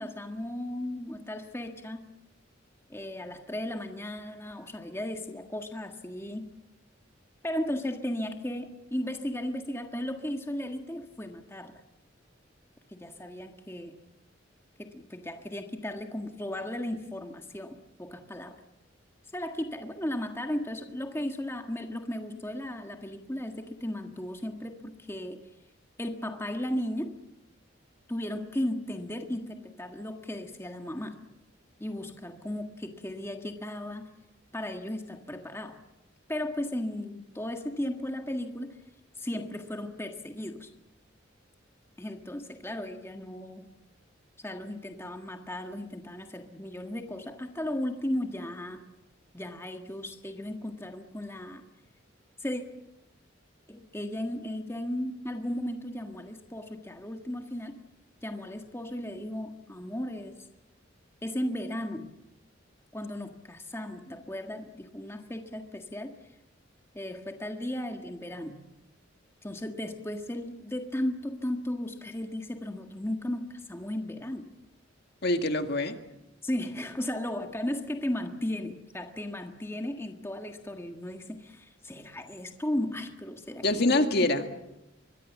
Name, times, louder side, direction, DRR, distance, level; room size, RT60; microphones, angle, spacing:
voice 1, 0.0-2.0 2.9-6.5 7.4-11.8 12.9-13.9 14.8-18.6 19.3-25.4 26.0-27.2 28.1-31.2 31.8-34.1 34.5-35.8 36.3-38.8 39.2-40.7 42.0-43.7 44.4-48.8 49.3-51.6 52.4-52.6 53.7-57.8 58.2-60.4 61.2-62.1 62.9-66.1 66.9-68.6 69.4-74.5 76.4-84.1, left 1 dB, 15° left, 5 dB, 1.6 m, -35 dB
voice 2, 75.2-76.0 83.6-84.5, left 2 dB, 55° left, 6 dB, 2.0 m, -25 dB
25.0 x 22.0 x 7.2 m, 0.94 s
head